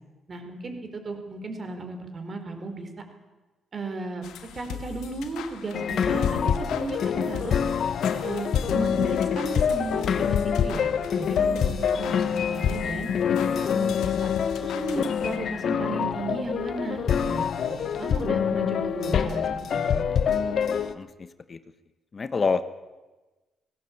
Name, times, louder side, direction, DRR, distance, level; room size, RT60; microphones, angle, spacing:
voice 1, 0.3-3.0 3.7-4.2 4.5-7.6 8.2-13.1 13.6-14.3 14.5-20.0, right 3 dB, 40° right, 6 dB, 4.3 m, -35 dB
sound 1, 4.2-15.6, left 8 dB, 85° left, 1.6 m, -40 dB
sound 2, 5.7-20.9, left 7 dB, 60° left, 1.1 m, -26 dB
voice 2, 20.7-21.6 22.1-22.6, left 4 dB, 35° left, 12 dB, 1.2 m, -28 dB
18.0 x 17.0 x 8.6 m, 1.2 s
cardioid pair, 90°, 0 cm